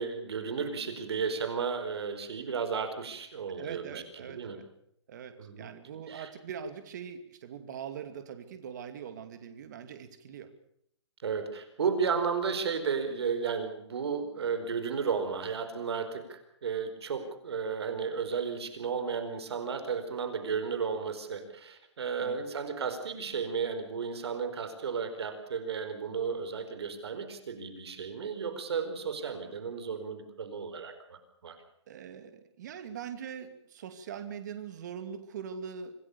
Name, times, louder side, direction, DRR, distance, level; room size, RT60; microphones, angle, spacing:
voice 1, 0.0-4.6 5.4-5.7 6.1-6.3 11.2-31.6, right 6 dB, 60° right, 9 dB, 4.6 m, -33 dB
voice 2, 3.6-4.6 5.1-10.5 22.2-22.5 31.9-35.9, right 7 dB, 40° right, 9 dB, 2.5 m, -42 dB
26.5 x 18.5 x 7.0 m, 0.71 s
hypercardioid pair, 170°, 15 cm